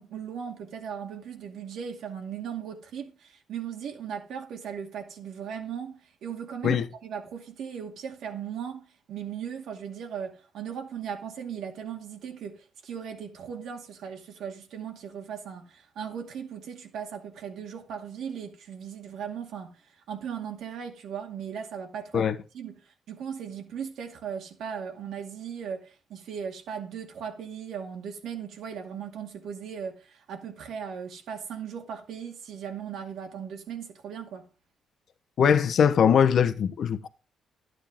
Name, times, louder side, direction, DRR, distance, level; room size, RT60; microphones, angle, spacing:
voice 1, 0.0-19.8 20.1-22.3 22.5-34.5, right 7 dB, 75° right, 2.2 m, -38 dB
voice 2, 35.4-37.1, left 7 dB, 60° left, 0.9 m, -21 dB
12.0 x 9.1 x 3.6 m
cardioid pair, 90°, 0 cm